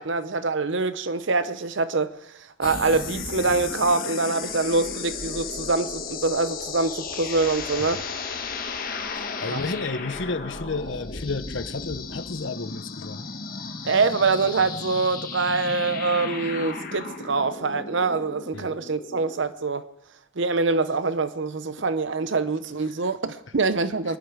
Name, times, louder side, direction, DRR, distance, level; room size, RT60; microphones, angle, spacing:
voice 1, 0.0-2.1 2.6-8.0 9.4-9.6 13.8-19.9 20.4-24.2, right 3 dB, 55° right, 0.7 m, -25 dB
sound 1, 2.6-19.4, left 4 dB, 40° left, 1.3 m, -34 dB
voice 2, 9.1-13.2 18.5-18.7, left 3 dB, 60° left, 0.8 m, -32 dB
23.5 x 11.5 x 5.0 m
head